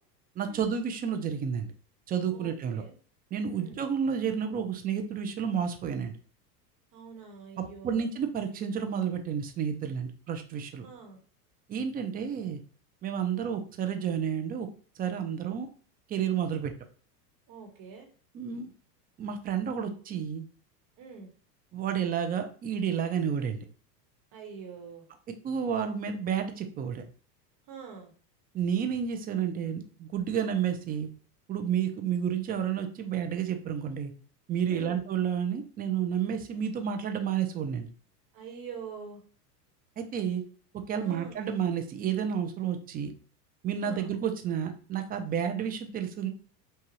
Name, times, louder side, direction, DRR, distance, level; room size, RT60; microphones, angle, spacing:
voice 1, 0.4-1.7 2.1-2.8 3.3-6.1 7.6-10.9 11.7-12.6 13.0-14.7 15.0-15.7 16.1-16.7 18.3-18.7 19.2-20.5 21.7-23.6 25.4-27.0 28.5-31.1 31.5-34.1 34.5-37.9 40.0-40.4 40.7-43.1 43.6-46.3, right 8 dB, 20° right, 7 dB, 0.4 m, -30 dB
voice 2, 2.3-2.9 3.5-3.8 6.9-8.0 10.8-11.2 17.5-18.1 21.0-21.3 24.3-25.1 27.7-28.1 34.7-35.0 38.3-39.2 41.0-41.4 43.8-44.1, right 6 dB, 40° right, 4 dB, 1.1 m, -45 dB
5.8 x 2.3 x 3.0 m, 0.42 s
hypercardioid pair, 105°, 49 cm